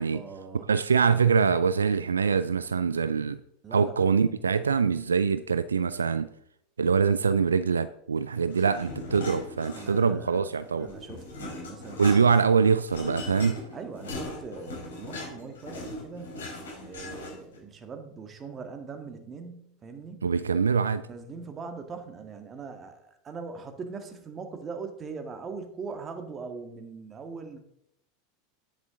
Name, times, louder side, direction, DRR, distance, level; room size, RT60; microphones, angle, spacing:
voice 1, 0.1-0.7 3.6-3.9 9.7-12.2 13.7-16.5 16.8-20.3 20.9-27.6, right 4 dB, 30° right, 6 dB, 1.8 m, -41 dB
voice 2, 0.7-3.4 3.7-6.3 6.8-10.9 12.0-13.6 20.2-21.0, right 5 dB, 85° right, 13 dB, 0.3 m, -24 dB
sound 1, 8.5-10.2 10.5-17.6, left 2 dB, 75° left, 4.0 m, -39 dB
9.9 x 8.5 x 3.8 m, 0.75 s
figure-of-eight pair, 85°, 0 cm